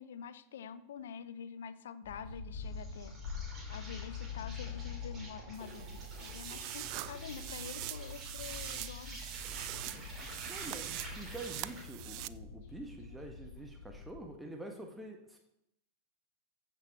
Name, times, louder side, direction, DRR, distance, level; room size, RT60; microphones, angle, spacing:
voice 1, 0.0-3.1 3.7-9.2, left 7 dB, 60° left, 15 dB, 0.7 m, -47 dB
sound 1, 2.0-14.3, left 5 dB, 45° left, 1.9 m, -46 dB
Insect, 2.5-11.9, right 1 dB, 20° right, 4.5 m, -49 dB
sound 2, 5.5-12.3, right 19 dB, 45° right, 0.3 m, -44 dB
voice 2, 10.5-15.4, right 2 dB, 5° right, 2 dB, 1.3 m, -46 dB
14.5 x 6.1 x 4.6 m, 0.81 s
figure-of-eight pair, 90°, 0 cm